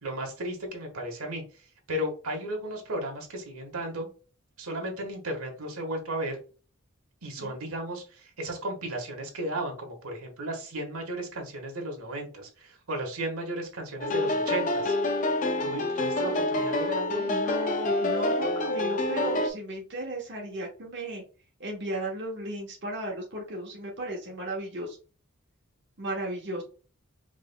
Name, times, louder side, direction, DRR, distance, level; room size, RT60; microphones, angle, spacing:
voice 1, 0.0-1.4 1.9-4.1 4.6-6.4 7.2-15.0 15.6-17.4, right 1 dB, 85° right, 2 dB, 1.4 m, -34 dB
sound 1, 14.0-19.5, left 1 dB, 35° left, 0.4 m, -27 dB
voice 2, 17.2-21.2 21.6-25.0 26.0-26.6, right 1 dB, 50° right, -2 dB, 1.0 m, -35 dB
5.0 x 3.3 x 2.2 m, 0.37 s
head